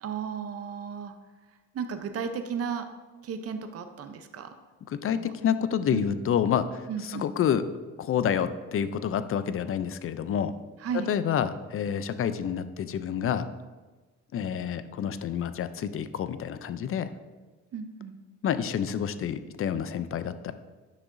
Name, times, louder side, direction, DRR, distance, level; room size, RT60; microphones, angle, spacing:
voice 1, 0.0-1.1 1.7-2.9 3.2-4.5 5.1-5.3 5.8-6.2 6.9-7.3 10.8-11.1 17.7-18.2, right 6 dB, 50° right, 8 dB, 0.7 m, -34 dB
voice 2, 4.9-6.8 7.1-7.6 8.0-10.5 11.1-13.5 14.3-17.1 18.4-20.5, left 8 dB, 45° left, 13 dB, 0.5 m, -28 dB
9.9 x 6.0 x 2.6 m, 1.3 s
cardioid pair, 90°, 30 cm